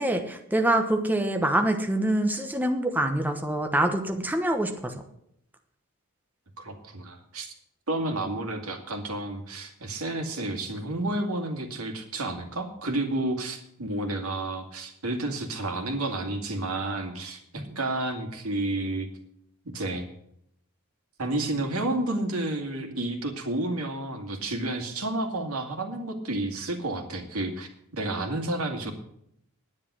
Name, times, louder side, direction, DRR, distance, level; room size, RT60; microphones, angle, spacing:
voice 1, 0.0-4.9 17.6-17.7, right 1 dB, 10° right, 4 dB, 1.0 m, -25 dB
voice 2, 6.6-7.5 7.9-19.1 19.7-20.1 21.2-28.9, right 2 dB, 85° right, 5 dB, 2.2 m, -31 dB
11.0 x 9.9 x 6.2 m, 0.73 s
head